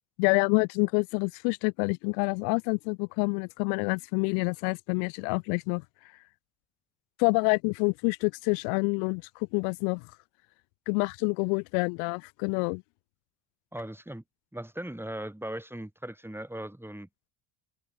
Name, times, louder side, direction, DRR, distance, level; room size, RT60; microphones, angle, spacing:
voice 1, 0.2-5.8 7.2-10.1 10.9-12.8, left 40 dB or more, 80° left, 1.4 m, -27 dB
voice 2, 13.7-14.2 14.5-17.3, right 1 dB, 5° right, 5.2 m, -39 dB
open air
supercardioid pair, 75°, 47 cm